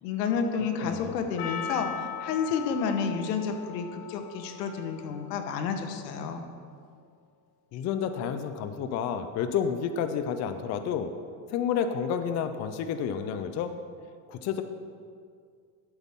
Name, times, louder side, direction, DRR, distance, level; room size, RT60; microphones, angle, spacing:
voice 1, 0.0-6.4, left 6 dB, 85° left, 6 dB, 1.3 m, -30 dB
voice 2, 0.8-1.3 7.7-11.1 11.5-13.8 14.3-14.6, left 7 dB, 35° left, 9 dB, 0.5 m, -30 dB
Percussion, 1.4-5.9, left 8 dB, 60° left, 1.1 m, -40 dB
12.0 x 8.2 x 3.6 m, 2.2 s
supercardioid pair, 135°, 48 cm